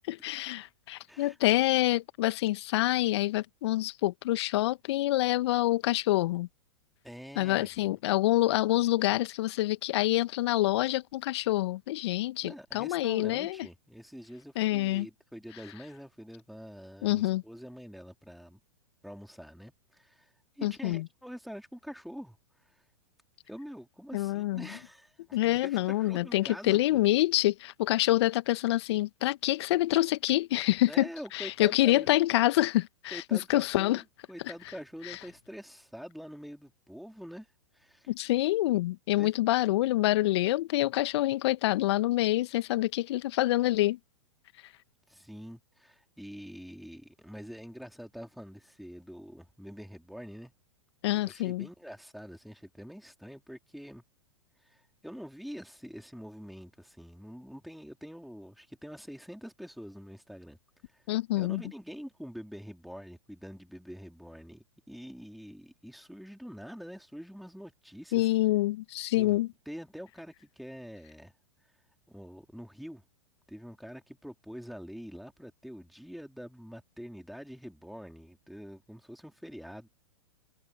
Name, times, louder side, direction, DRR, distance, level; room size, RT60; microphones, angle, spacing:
voice 1, 0.1-6.5 7.4-13.6 14.6-15.1 17.0-17.4 20.6-21.1 24.1-24.7 25.3-34.0 35.0-35.2 38.1-44.0 51.0-51.7 61.1-61.6 68.1-69.5, left 16 dB, 55° left, 1.7 m, -27 dB
voice 2, 7.0-7.9 12.4-18.6 19.0-20.3 20.6-22.4 22.7-22.8 23.5-27.0 30.9-32.1 33.1-37.5 37.7-38.1 39.2-39.3 45.1-50.5 51.3-54.0 54.6-60.6 61.3-68.3 69.1-71.3 72.1-73.0 73.5-79.9, equal, ahead, 3.9 m, -45 dB
figure-of-eight pair, 105°, 17 cm